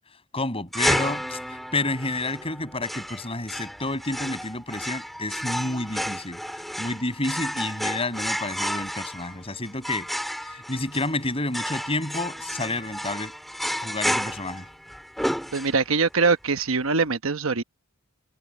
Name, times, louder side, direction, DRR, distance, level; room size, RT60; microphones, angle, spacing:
voice 1, 0.3-6.4 6.8-10.1 10.5-13.3 13.8-14.7, left 2 dB, 25° left, 7.2 m, -30 dB
sound 1, 0.7-16.1, equal, ahead, 3.3 m, -31 dB
voice 2, 15.5-17.6, right 4 dB, 70° right, 1.1 m, -23 dB
head